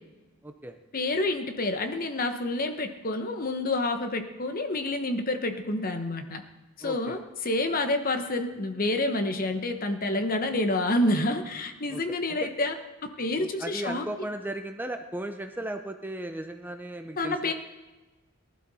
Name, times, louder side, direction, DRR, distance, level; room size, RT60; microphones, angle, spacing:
voice 1, 0.4-0.8 6.8-7.2 11.9-12.5 13.4-17.5, right 1 dB, 10° right, 6 dB, 0.6 m, -36 dB
voice 2, 0.9-6.4 6.8-12.7 13.0-14.1 17.2-17.5, left 2 dB, 40° left, 7 dB, 1.1 m, -28 dB
19.0 x 12.0 x 4.2 m, 1.1 s
head